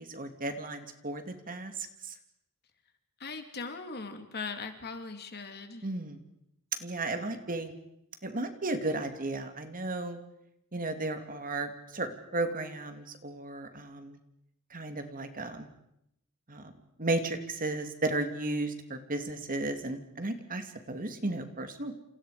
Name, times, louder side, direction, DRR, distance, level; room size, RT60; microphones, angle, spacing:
voice 1, 0.0-1.7 2.0-2.1 5.8-6.2 6.8-7.7 8.2-10.2 10.7-14.2 14.7-15.7 16.5-16.7 17.0-21.9, right 2 dB, 40° right, 7 dB, 2.5 m, -34 dB
voice 2, 3.2-5.9, left 4 dB, 50° left, 6 dB, 2.9 m, -39 dB
29.0 x 28.0 x 5.0 m, 0.80 s
head